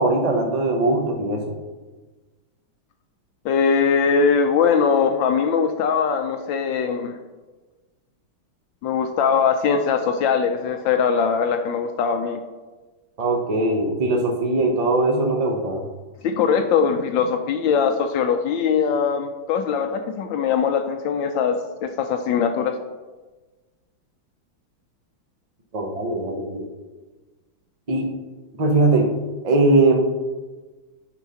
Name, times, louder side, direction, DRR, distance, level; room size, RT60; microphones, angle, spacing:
voice 1, 0.0-1.5 13.2-15.8 25.7-26.7 27.9-28.1 28.6-29.1 29.4-30.0, right 2 dB, 90° right, 3 dB, 0.3 m, -20 dB
voice 2, 3.4-7.2 8.8-12.4 16.2-22.7, left 6 dB, 75° left, 6 dB, 1.2 m, -21 dB
9.0 x 4.0 x 5.6 m, 1.3 s
omnidirectional pair, 2.3 m